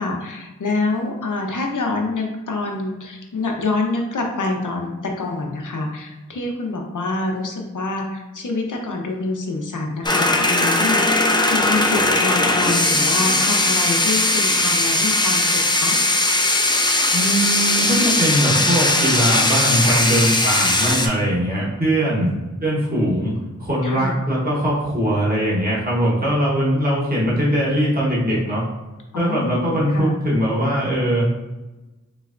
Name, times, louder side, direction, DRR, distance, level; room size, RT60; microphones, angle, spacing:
voice 1, 0.0-16.0 23.8-24.2 29.1-30.2, left 3 dB, 85° left, 1 dB, 0.6 m, -26 dB
sound 1, 10.0-21.1, left 2 dB, 15° left, 0.4 m, -19 dB
voice 2, 17.1-23.3 23.6-28.6 29.1-31.3, equal, 30° right, -6 dB, 1.0 m, -21 dB
3.9 x 3.2 x 2.4 m, 1.1 s
wide cardioid pair, 65°, 30 cm